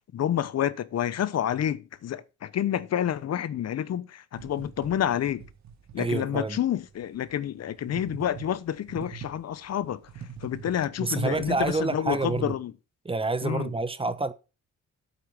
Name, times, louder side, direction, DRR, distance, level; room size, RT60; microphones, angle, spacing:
voice 1, 0.1-5.4 5.9-10.0 10.4-12.7 13.4-13.7, left 10 dB, 55° left, 1.0 m, -29 dB
sound 1, 4.3-12.6, right 7 dB, 65° right, 1.9 m, -45 dB
voice 2, 6.0-6.6 11.0-12.6 13.0-14.3, right 3 dB, 20° right, 1.1 m, -28 dB
8.6 x 8.4 x 5.9 m
cardioid pair, 90°, 30 cm